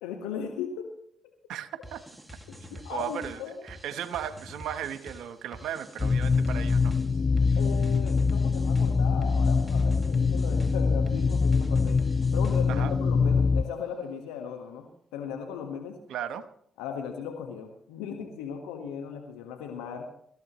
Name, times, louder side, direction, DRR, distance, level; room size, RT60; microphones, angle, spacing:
voice 1, 0.0-0.9 2.8-3.5 7.6-12.0 12.3-14.9 15.1-16.0 16.8-20.0, left 7 dB, 90° left, 4 dB, 1.5 m, -37 dB
voice 2, 1.5-2.0 2.7-6.9 7.5-7.6 12.7-12.9 16.1-16.5, right 9 dB, 75° right, 11 dB, 1.1 m, -36 dB
sound 1, 1.8-12.9, equal, 10° right, 2.2 m, -47 dB
sound 2, 6.0-13.6, left 4 dB, 40° left, 0.5 m, -24 dB
24.5 x 14.0 x 3.1 m, 0.66 s
hypercardioid pair, 50°, 0 cm